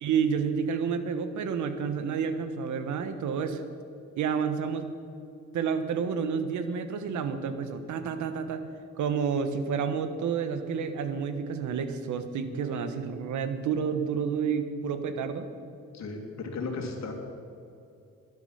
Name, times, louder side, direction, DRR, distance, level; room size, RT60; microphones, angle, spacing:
voice 1, 0.0-3.6 4.2-4.9 5.5-8.7 9.0-15.5, right 6 dB, 75° right, 9 dB, 1.2 m, -30 dB
voice 2, 15.9-17.1, left 3 dB, 60° left, 3 dB, 2.4 m, -35 dB
12.5 x 11.0 x 5.6 m, 2.6 s
cardioid pair, 90°, 30 cm